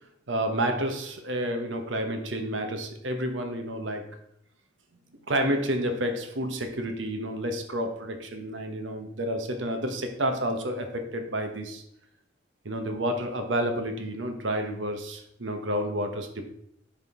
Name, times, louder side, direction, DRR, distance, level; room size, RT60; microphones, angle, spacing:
voice 1, 0.3-4.1 5.3-11.8 12.6-16.5, right 1 dB, 80° right, 5 dB, 1.0 m, -30 dB
10.0 x 3.7 x 3.7 m, 0.73 s
head